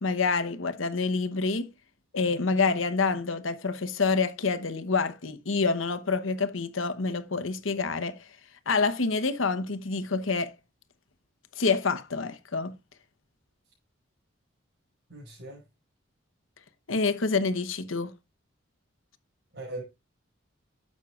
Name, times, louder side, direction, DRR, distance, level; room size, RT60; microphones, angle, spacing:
voice 1, 0.0-1.7 2.1-8.2 8.7-10.5 11.6-12.7 16.9-18.1, left 4 dB, 85° left, 1.0 m, -27 dB
voice 2, 15.1-15.6 19.5-19.8, right 2 dB, 60° right, 5.7 m, -39 dB
12.0 x 8.2 x 2.5 m
head